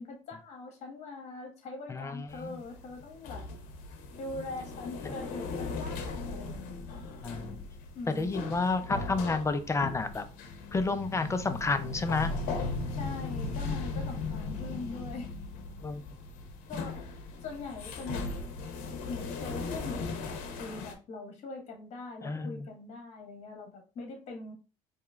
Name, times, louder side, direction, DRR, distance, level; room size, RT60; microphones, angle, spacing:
voice 1, 0.0-3.4 4.2-7.1 7.9-8.5 12.9-15.3 16.7-17.1 17.4-18.5 19.1-24.5, left 3 dB, 50° left, 2 dB, 1.5 m, -42 dB
voice 2, 1.9-2.6 5.0-5.1 7.2-7.6 8.2-10.2 10.7-12.3 15.8-16.0 22.2-22.7, left 3 dB, 20° left, 10 dB, 0.4 m, -30 dB
sound 1, 2.3-20.9, left 3 dB, 75° left, 0.8 m, -38 dB
4.4 x 2.9 x 2.4 m, 0.33 s
cardioid pair, 105°, 14 cm